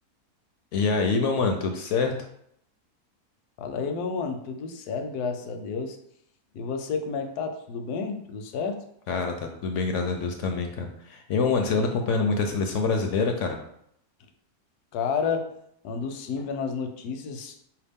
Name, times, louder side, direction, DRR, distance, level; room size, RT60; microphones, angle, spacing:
voice 1, 0.7-2.1 9.1-13.6, left 4 dB, 70° left, 4 dB, 0.7 m, -25 dB
voice 2, 3.6-6.0 6.5-8.8 14.9-15.5 15.8-17.6, left 5 dB, 85° left, 5 dB, 1.1 m, -31 dB
4.6 x 2.9 x 3.5 m, 0.72 s
omnidirectional pair, 1.6 m